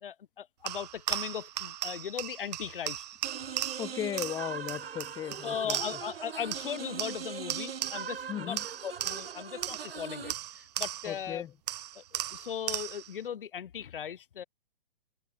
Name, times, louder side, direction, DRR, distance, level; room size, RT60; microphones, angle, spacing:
voice 1, 0.0-3.0 5.4-11.5 11.9-14.4, left 8 dB, 65° left, 2.8 m, -38 dB
sound 1, 0.7-6.2 6.5-8.2 8.6-11.3 11.7-13.2, right 12 dB, 45° right, 0.9 m, -37 dB
sound 2, 3.2-10.3, right 7 dB, 80° right, 2.4 m, -41 dB
voice 2, 3.8-5.8 8.3-8.6 11.1-11.5, left 10 dB, 10° left, 1.1 m, -36 dB
hypercardioid pair, 155°, 29 cm